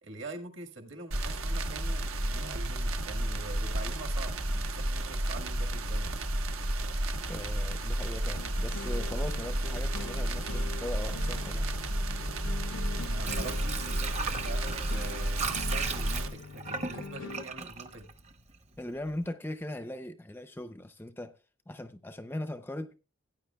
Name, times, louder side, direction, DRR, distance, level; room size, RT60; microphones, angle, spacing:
voice 1, 0.0-6.3 13.0-18.1, right 2 dB, 60° right, 1.7 m, -44 dB
sound 1, 1.1-16.3, right 1 dB, 80° right, 1.2 m, -32 dB
voice 2, 7.3-11.7 18.8-21.4 21.7-23.0, left 1 dB, 10° left, 0.5 m, -39 dB
sound 2, 8.3-17.4, left 4 dB, 70° left, 0.6 m, -44 dB
Water / Sink (filling or washing), 12.9-18.7 19.1-19.2, right 5 dB, 30° right, 0.8 m, -37 dB
17.0 x 9.5 x 2.3 m
head